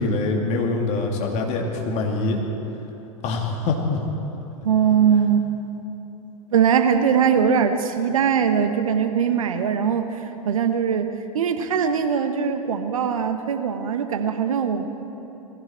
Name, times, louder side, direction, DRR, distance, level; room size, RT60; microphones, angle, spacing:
voice 1, 0.0-2.4 3.2-4.0, left 3 dB, 40° left, 1 dB, 2.5 m, -24 dB
voice 2, 4.6-5.5 6.5-14.8, right 7 dB, 70° right, 8 dB, 1.2 m, -21 dB
20.5 x 15.5 x 4.5 m, 3.0 s
figure-of-eight pair, 95°, 18 cm